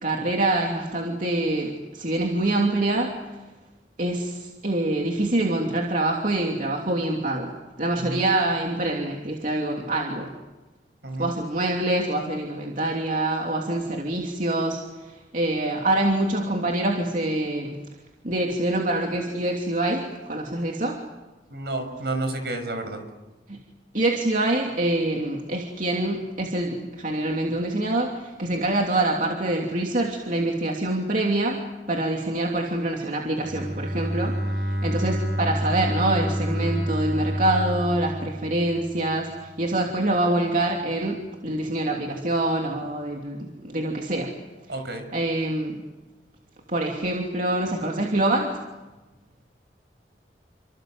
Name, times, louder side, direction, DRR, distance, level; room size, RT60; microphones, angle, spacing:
voice 1, 0.0-3.2 4.0-7.5 7.8-10.3 11.2-17.8 18.2-21.0 23.5-23.6 23.9-44.3 45.1-45.8 46.7-48.6, right 1 dB, 50° right, 0 dB, 2.9 m, -25 dB
voice 2, 21.5-23.0 44.7-45.1, right 2 dB, 65° right, 7 dB, 6.4 m, -30 dB
Bowed string instrument, 33.4-39.3, equal, 85° right, 5.1 m, -28 dB
29.5 x 25.0 x 7.9 m, 1.1 s
head